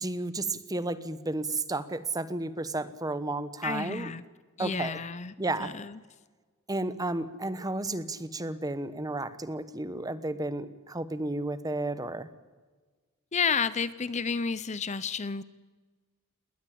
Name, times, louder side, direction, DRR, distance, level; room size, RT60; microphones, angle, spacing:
voice 1, 0.0-4.1 4.6-5.0 5.4-5.7 6.7-12.3, right 2 dB, 15° right, 13 dB, 1.0 m, -32 dB
voice 2, 3.6-4.2 4.6-5.3 5.6-6.0 13.3-15.4, left 5 dB, 30° left, 16 dB, 0.6 m, -31 dB
20.5 x 19.0 x 8.6 m, 1.3 s
head